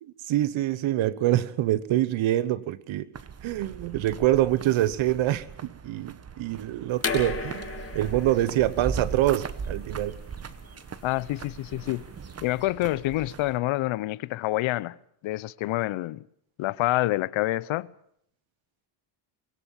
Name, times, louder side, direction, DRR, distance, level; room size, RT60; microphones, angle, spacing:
voice 1, 0.0-3.1 3.4-10.2, right 14 dB, 70° right, 1.2 m, -25 dB
sound 1, 3.1-13.6, right 6 dB, 30° right, 1.2 m, -39 dB
sound 2, 7.0-12.6, left 5 dB, 25° left, 3.4 m, -36 dB
voice 2, 11.0-12.0 12.4-15.0 15.2-16.2 16.6-17.9, left 17 dB, 70° left, 0.8 m, -27 dB
22.5 x 17.0 x 7.3 m
cardioid pair, 90°, 50 cm